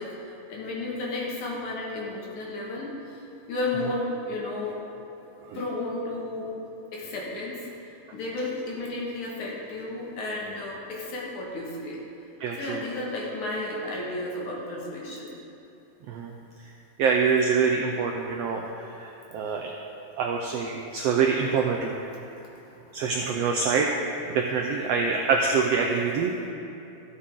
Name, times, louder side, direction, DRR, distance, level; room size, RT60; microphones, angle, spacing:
voice 1, 0.0-4.8 5.5-6.5 6.9-12.0 12.5-15.3 19.4-19.6 22.4-22.8 23.3-23.5, left 2 dB, 75° left, -4 dB, 3.1 m, -33 dB
voice 2, 12.4-12.8 16.1-16.3 17.0-19.7 20.2-22.0 22.9-23.9 24.3-26.5, right 5 dB, 85° right, 1 dB, 1.4 m, -25 dB
14.0 x 8.5 x 3.7 m, 2.9 s
omnidirectional pair, 3.5 m